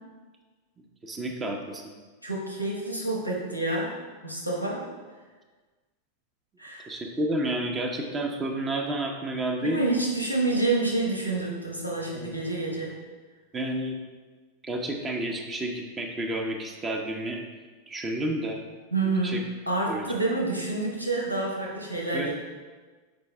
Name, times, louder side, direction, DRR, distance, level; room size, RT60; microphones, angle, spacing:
voice 1, 1.0-1.8 6.9-9.8 12.1-12.3 13.5-14.0 14.6-17.4 17.9-18.6 19.2-19.4 19.9-20.0 22.1-22.3, right 1 dB, 20° right, 1 dB, 0.7 m, -30 dB
voice 2, 2.2-3.9 4.2-4.8 6.6-6.9 9.6-12.9 18.9-22.3, right 2 dB, 90° left, -2 dB, 1.2 m, -28 dB
6.0 x 4.6 x 3.3 m, 1.4 s
figure-of-eight pair, 90°, 0 cm